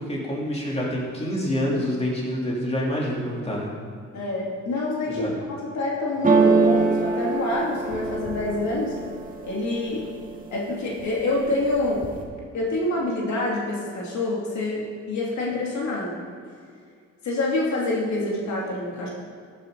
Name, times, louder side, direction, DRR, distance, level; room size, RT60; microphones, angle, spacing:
voice 1, 0.0-3.7 5.1-5.3, equal, 20° left, -4 dB, 3.3 m, -27 dB
voice 2, 4.1-9.0 9.4-10.1 10.5-12.1 12.5-16.2 17.2-19.1, left 2 dB, 65° left, -3 dB, 2.7 m, -27 dB
sound 1, 6.2-10.1 10.6-11.2 11.5-12.2, right 3 dB, 30° right, 1.8 m, -23 dB
14.0 x 9.7 x 4.0 m, 2.1 s
cardioid pair, 90°, 30 cm